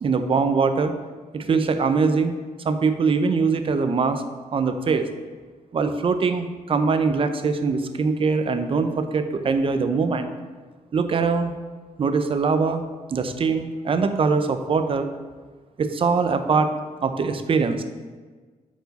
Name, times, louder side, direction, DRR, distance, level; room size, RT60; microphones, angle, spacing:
voice 1, 0.0-0.9 1.3-2.3 2.6-4.2 4.5-5.1 5.7-10.3 10.9-11.5 12.0-12.8 13.1-15.1 15.8-16.7 17.0-17.8, right 4 dB, 45° right, 8 dB, 0.6 m, -22 dB
8.0 x 4.7 x 4.1 m, 1.4 s
wide cardioid pair, 125°, 13 cm